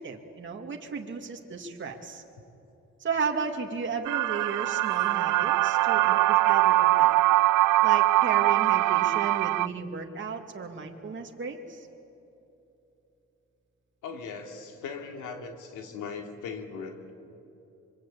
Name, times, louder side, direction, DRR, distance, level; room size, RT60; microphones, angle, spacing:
voice 1, 0.0-2.2 3.0-7.2 7.8-11.9, right 5 dB, 40° right, 2 dB, 2.2 m, -34 dB
sound 1, 4.0-9.7, right 17 dB, 85° right, 0.5 m, -22 dB
voice 2, 14.0-17.1, left 5 dB, 90° left, 4 dB, 2.9 m, -39 dB
25.0 x 23.5 x 8.6 m, 2.9 s
cardioid pair, 90°, 30 cm